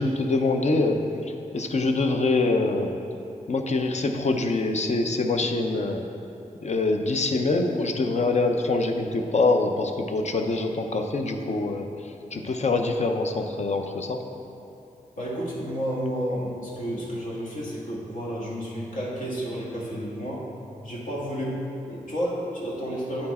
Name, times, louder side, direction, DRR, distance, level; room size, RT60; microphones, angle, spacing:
voice 1, 0.0-3.0 3.5-6.1 6.6-14.2, left 3 dB, 50° left, 4 dB, 0.6 m, -25 dB
voice 2, 15.1-20.4 20.8-23.3, equal, 70° left, -5 dB, 1.7 m, -31 dB
8.5 x 4.5 x 4.2 m, 2.8 s
cardioid pair, 60°, 14 cm